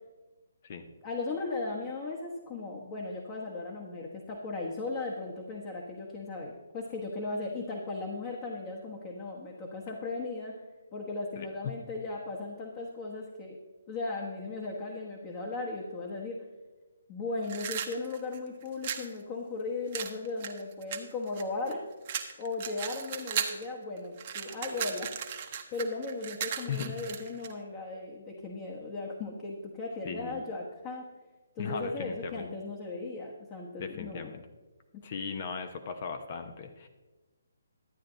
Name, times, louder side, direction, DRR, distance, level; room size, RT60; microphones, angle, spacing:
voice 1, 1.0-10.5 10.9-13.6 13.9-16.4 17.1-21.8 22.4-25.1 25.7-31.1 31.5-34.3 34.9-35.0, left 3 dB, 30° left, -1 dB, 1.3 m, -37 dB
voice 2, 11.4-11.7 26.7-26.9 30.0-30.4 31.6-32.5 33.8-34.4 35.0-36.9, left 6 dB, 45° left, 7 dB, 0.9 m, -37 dB
sound 1, 17.4-19.1 19.9-21.7 22.1-23.7 24.0-27.5, right 8 dB, 40° right, 1.0 m, -36 dB
12.0 x 8.7 x 3.9 m, 1.2 s
figure-of-eight pair, 145°, 0 cm